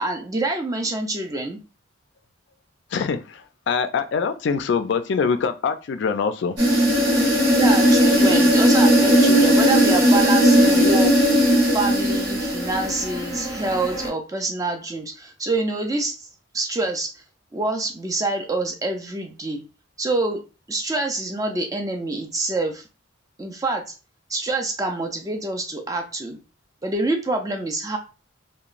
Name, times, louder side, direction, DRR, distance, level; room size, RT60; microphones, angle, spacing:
voice 1, 0.0-1.6 7.6-11.1 11.7-16.3 16.5-17.1 17.5-19.6 20.0-20.4 20.7-22.8 23.4-23.9 24.3-26.4 26.8-28.0, right 2 dB, 15° right, 3 dB, 0.4 m, -26 dB
voice 2, 2.9-6.6, left 5 dB, 55° left, 10 dB, 0.3 m, -24 dB
sound 1, 6.6-14.1, equal, 55° right, 1.2 m, -17 dB
2.9 x 2.1 x 2.4 m, 0.33 s
head